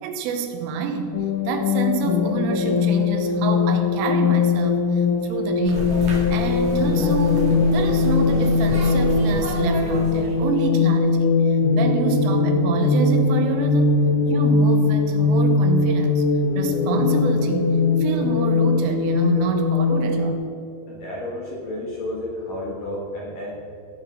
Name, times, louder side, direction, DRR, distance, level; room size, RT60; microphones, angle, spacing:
voice 1, 0.0-14.0 14.3-16.3 16.6-20.4, right 6 dB, 80° right, 6 dB, 3.5 m, -28 dB
sound 1, 1.1-20.3, left 4 dB, 85° left, 2.2 m, -20 dB
sound 2, 5.6-10.5, equal, 50° right, 2.6 m, -29 dB
voice 2, 20.9-23.6, left 1 dB, 60° left, -4 dB, 2.4 m, -31 dB
17.5 x 6.0 x 5.6 m, 2.6 s
omnidirectional pair, 5.8 m